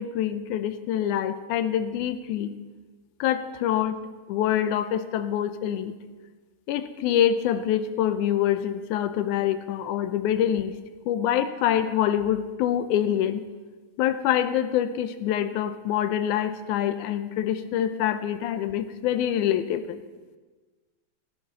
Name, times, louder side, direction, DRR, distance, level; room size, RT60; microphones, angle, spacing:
voice 1, 0.0-2.6 3.2-4.0 4.3-6.0 6.7-10.7 11.1-13.4 14.0-20.0, left 10 dB, 75° left, 10 dB, 2.0 m, -25 dB
15.5 x 14.0 x 4.1 m, 1.3 s
omnidirectional pair, 4.0 m